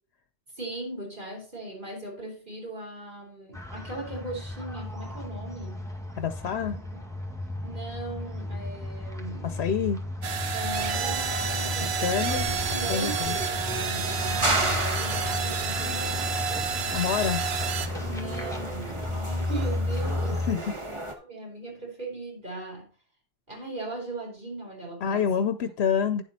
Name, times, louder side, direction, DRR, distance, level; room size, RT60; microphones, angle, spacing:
voice 1, 0.6-5.8 6.6-6.7 7.6-9.6 10.5-16.3 18.1-22.9 23.5-25.5, right 2 dB, 50° right, 4.4 m, -38 dB
sound 1, 3.5-20.5, left 2 dB, 5° left, 1.8 m, -34 dB
voice 2, 6.2-6.8 9.4-10.0 12.0-12.5 12.9-13.3 16.9-17.4 20.3-20.7 25.0-26.2, left 7 dB, 75° left, 0.9 m, -27 dB
sound 2, 10.2-17.9, right 6 dB, 80° right, 1.2 m, -30 dB
sound 3, 10.8-21.1, right 2 dB, 30° right, 1.4 m, -34 dB
9.8 x 7.4 x 4.2 m
omnidirectional pair, 1.1 m